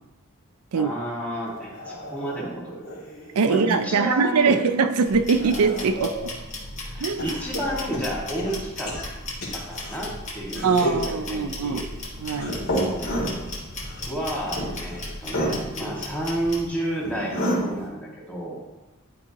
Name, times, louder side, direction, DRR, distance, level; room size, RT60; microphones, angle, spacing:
voice 1, 0.7-3.0 3.4-4.6 6.9-9.0 9.5-11.8 14.1-18.6, right 1 dB, 5° left, -5 dB, 1.9 m, -31 dB
sound 1, 1.5-3.9 4.4-6.3 7.2-10.0 10.5-11.1 12.3-15.2 15.5-16.0 17.1-17.2, equal, 85° left, 2.6 m, -36 dB
voice 2, 3.4-6.3 7.0-7.3 10.6-11.8 12.2-12.6, right 5 dB, 90° right, 9 dB, 0.5 m, -22 dB
sound 2, 5.1-16.7, left 1 dB, 35° left, 1.5 m, -36 dB
sound 3, 11.0-17.9, equal, 65° left, 2.3 m, -29 dB
11.0 x 4.6 x 2.9 m, 1.1 s
head